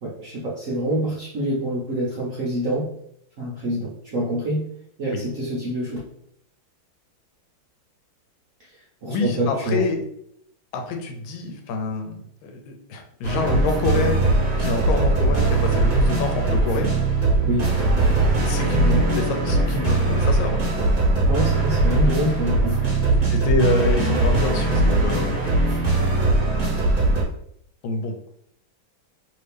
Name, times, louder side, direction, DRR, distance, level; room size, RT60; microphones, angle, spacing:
voice 1, 0.0-2.9 3.4-4.7 5.0-6.0 8.6-8.7 9.0-9.8 17.4-17.7 21.2-22.8 25.1-25.3, right 1 dB, 70° right, -5 dB, 0.7 m, -26 dB
voice 2, 9.1-10.0 10.7-14.3 14.6-16.9 18.4-20.6 23.2-25.4 27.8-28.3, left 3 dB, 85° left, 4 dB, 1.5 m, -26 dB
sound 1, 13.2-27.2, right 2 dB, 30° right, 1.5 m, -20 dB
3.1 x 2.7 x 3.4 m, 0.71 s
omnidirectional pair, 2.2 m